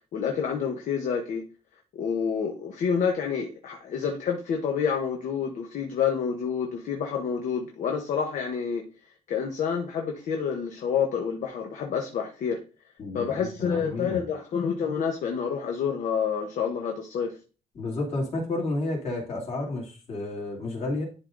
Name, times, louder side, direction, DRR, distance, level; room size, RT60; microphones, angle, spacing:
voice 1, 0.1-1.4 1.9-8.9 9.3-12.6 13.1-17.3, left 7 dB, 65° left, 2 dB, 1.1 m, -28 dB
voice 2, 13.0-14.2 17.7-21.0, left 2 dB, 45° left, -1 dB, 2.9 m, -31 dB
11.0 x 3.8 x 3.9 m, 0.34 s
cardioid pair, 175°, 14 cm